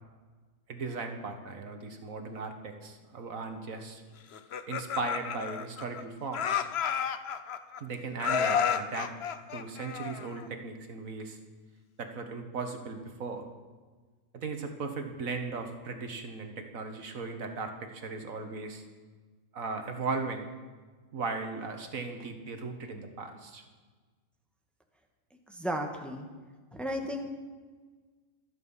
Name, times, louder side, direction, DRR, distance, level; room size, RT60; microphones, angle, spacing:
voice 1, 0.7-4.0 4.7-6.7 7.8-9.1 9.5-11.4 12.0-13.5 14.3-18.9 19.5-20.5 21.1-23.7, right 4 dB, 75° right, 5 dB, 1.8 m, -37 dB
Laughter, 4.3-6.0 6.3-7.8 8.2-10.5, left 8 dB, 55° left, 0.9 m, -31 dB
voice 2, 25.5-26.3 26.7-27.3, equal, ahead, 3 dB, 1.5 m, -34 dB
25.5 x 9.2 x 5.6 m, 1.4 s
omnidirectional pair, 1.4 m